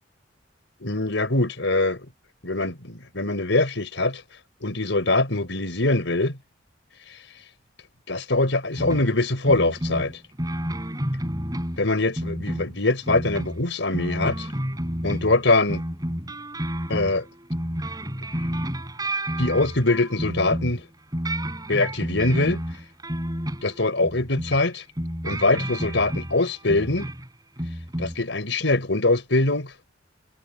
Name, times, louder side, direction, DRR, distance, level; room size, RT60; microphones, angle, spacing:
voice 1, 0.8-2.1 2.4-4.2 4.6-6.4 8.1-10.1 11.8-14.5 15.0-15.8 16.9-17.2 19.4-20.9 21.7-22.6 23.6-24.8 25.2-27.1 28.0-29.7, left 2 dB, 75° left, 4.4 m, -23 dB
sound 1, 8.8-9.1 9.4-11.9 12.2-15.4 15.7-20.8 21.1-24.6 25.0-27.3 27.6-28.2, right 1 dB, 20° right, 4.1 m, -30 dB
head